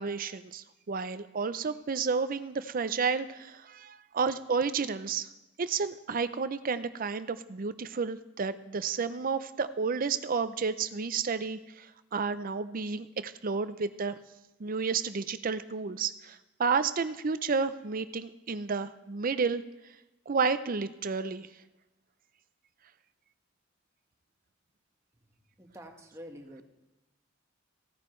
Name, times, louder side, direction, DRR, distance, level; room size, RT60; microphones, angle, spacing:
voice 1, 0.0-5.3 5.6-14.2 14.6-19.6 20.3-21.5, right 5 dB, 45° right, 13 dB, 0.5 m, -31 dB
voice 2, 25.6-26.6, equal, 15° right, 2 dB, 1.3 m, -47 dB
16.5 x 9.5 x 3.2 m, 1.0 s
head